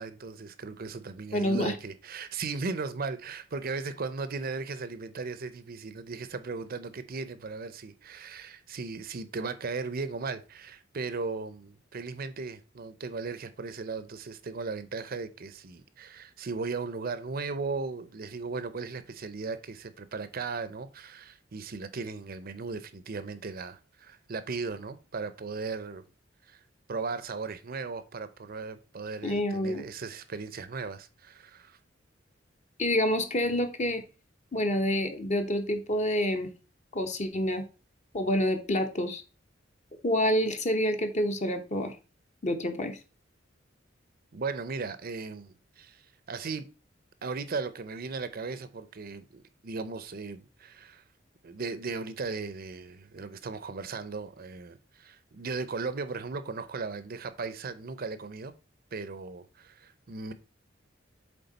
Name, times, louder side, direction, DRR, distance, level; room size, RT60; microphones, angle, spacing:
voice 1, 0.0-26.0 26.4-26.6 26.9-31.8 44.3-46.6 47.2-51.0 51.4-58.5 58.9-60.3, right 4 dB, 50° right, 0.6 m, -37 dB
voice 2, 1.3-1.7 29.2-29.8 32.8-34.0 34.5-36.5 36.9-37.6 38.1-39.2 40.0-41.9 42.4-43.0, left 1 dB, 35° left, 1.0 m, -27 dB
7.9 x 3.7 x 4.0 m
head